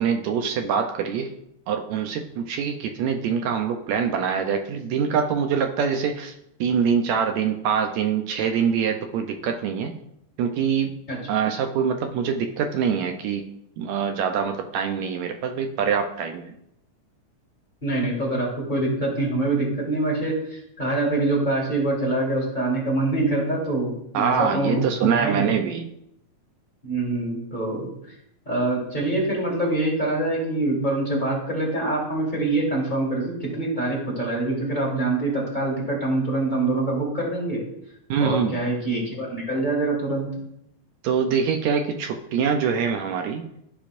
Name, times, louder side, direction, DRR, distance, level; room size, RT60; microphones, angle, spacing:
voice 1, 0.0-1.3 1.7-6.3 6.6-9.9 10.4-11.0 11.3-13.4 13.8-16.5 24.1-25.9 38.1-38.6 41.0-43.4, right 7 dB, 75° right, 5 dB, 1.7 m, -24 dB
voice 2, 17.8-25.5 26.8-28.1 28.4-37.6 38.2-40.3, right 2 dB, 20° left, -4 dB, 1.6 m, -25 dB
13.5 x 5.2 x 2.5 m, 0.78 s
omnidirectional pair, 3.7 m